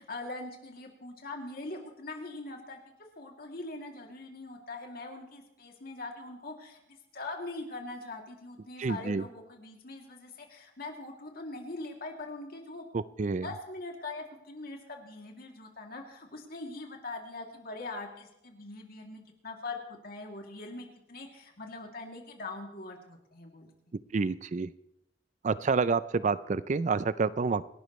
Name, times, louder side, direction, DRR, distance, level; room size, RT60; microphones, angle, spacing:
voice 1, 0.0-2.8 3.2-12.8 13.4-23.7, left 2 dB, 55° left, 1 dB, 2.7 m, -42 dB
voice 2, 8.8-9.2 12.9-13.5 24.1-24.7 25.4-27.6, right 4 dB, 40° right, 16 dB, 0.4 m, -28 dB
27.5 x 12.0 x 3.2 m, 0.82 s
head